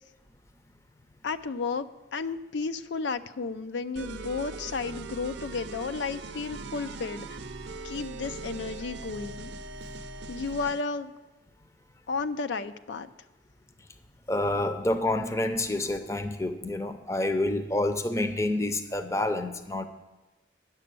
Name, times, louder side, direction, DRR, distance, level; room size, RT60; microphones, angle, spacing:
voice 1, 1.2-7.3 7.8-9.5 10.3-11.1 12.1-13.1, left 4 dB, 85° left, 11 dB, 0.4 m, -33 dB
sound 1, 4.0-10.9, right 3 dB, 85° right, 0.6 m, -40 dB
voice 2, 14.3-19.9, left 1 dB, 15° left, 8 dB, 0.5 m, -28 dB
9.6 x 6.8 x 6.7 m, 1.1 s
head